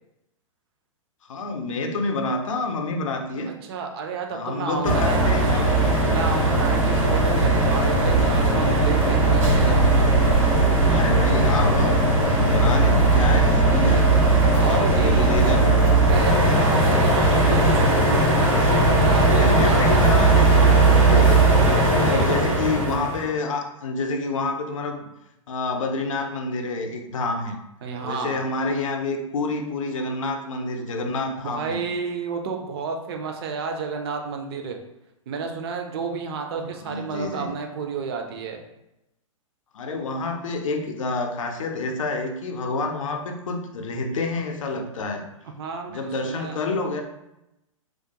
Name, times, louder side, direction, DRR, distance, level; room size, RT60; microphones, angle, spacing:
voice 1, 1.3-3.5 4.3-6.0 6.7-7.1 10.9-14.0 14.5-15.7 19.2-21.5 22.0-25.1 25.5-27.6 28.0-31.8 36.8-37.5 39.7-45.3 45.9-47.0, left 3 dB, 70° left, 4 dB, 0.5 m, -28 dB
voice 2, 3.6-5.4 6.1-10.1 13.9-14.0 14.4-15.6 16.1-18.3 18.7-20.3 21.8-22.8 27.8-28.4 31.4-34.8 35.3-38.6 45.6-46.6, right 5 dB, 50° right, 4 dB, 0.4 m, -31 dB
sound 1, 4.8-23.3, right 2 dB, 70° right, 1.2 m, -18 dB
2.3 x 2.1 x 2.7 m, 0.89 s
figure-of-eight pair, 110°, 18 cm